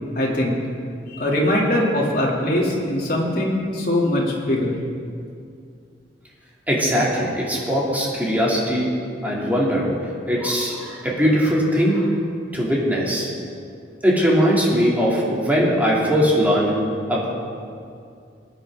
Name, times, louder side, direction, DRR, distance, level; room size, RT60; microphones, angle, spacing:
voice 1, 0.1-0.6 1.1-4.7, left 1 dB, 55° left, -4 dB, 2.9 m, -21 dB
voice 2, 6.7-8.9 9.2-9.9 10.3-12.1 12.5-13.3 14.0-16.7 17.1-17.3, equal, 10° right, -5 dB, 2.8 m, -20 dB
21.5 x 9.7 x 3.8 m, 2.3 s
head